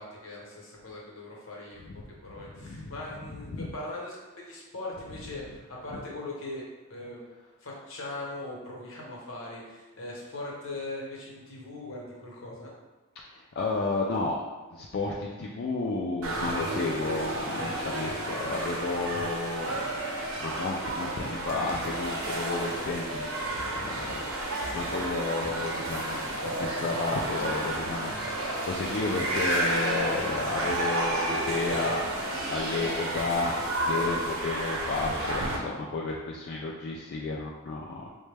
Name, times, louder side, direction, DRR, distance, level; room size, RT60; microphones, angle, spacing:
voice 1, 0.0-1.9 2.2-6.6 6.9-7.3 7.6-12.7, left 2 dB, 70° left, -3 dB, 0.9 m, -40 dB
voice 2, 2.4-2.9 3.4-3.7 13.2-14.4 14.7-19.8 20.4-24.2 24.7-33.6 33.8-38.2, left 3 dB, 50° left, -3 dB, 0.3 m, -32 dB
sound 1, 16.2-35.6, right 1 dB, 80° right, 0.6 m, -31 dB
3.8 x 2.1 x 3.3 m, 1.2 s
head